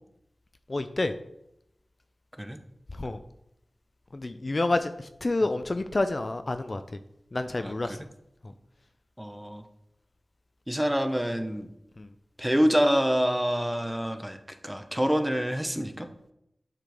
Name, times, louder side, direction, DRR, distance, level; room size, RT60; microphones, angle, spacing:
voice 1, 0.7-1.1 3.0-3.2 4.1-6.8 7.3-8.0 12.0-12.1, left 2 dB, 50° left, 9 dB, 0.3 m, -28 dB
voice 2, 7.6-8.0 9.2-9.7 10.7-11.7 12.4-16.1, equal, 5° right, 7 dB, 0.6 m, -27 dB
7.3 x 3.9 x 3.4 m, 0.81 s
wide cardioid pair, 50°, 0 cm